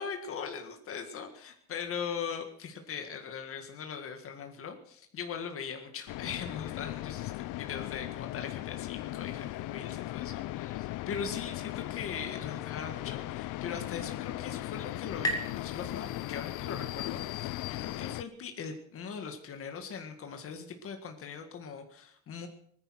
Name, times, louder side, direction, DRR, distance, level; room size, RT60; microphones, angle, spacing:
voice 1, 0.0-22.5, left 6 dB, 45° left, 5 dB, 1.8 m, -40 dB
sound 1, 6.1-18.2, left 17 dB, 85° left, 0.5 m, -38 dB
sound 2, 13.8-17.1, equal, 10° left, 2.3 m, -40 dB
20.0 x 10.0 x 6.3 m, 0.66 s
cardioid pair, 175°, 30 cm